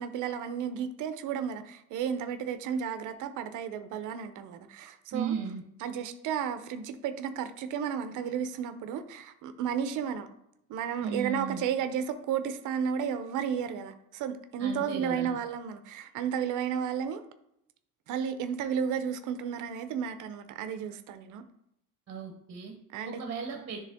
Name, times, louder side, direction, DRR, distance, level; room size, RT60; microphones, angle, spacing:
voice 1, 0.0-5.4 5.8-10.3 10.7-17.2 18.1-21.4 22.9-23.2, right 8 dB, 65° right, 10 dB, 0.6 m, -33 dB
voice 2, 5.1-5.6 11.0-11.6 14.6-15.3 22.1-22.8 23.1-23.8, right 6 dB, 40° right, 4 dB, 0.9 m, -35 dB
10.0 x 3.4 x 3.5 m, 0.77 s
cardioid pair, 170°, 33 cm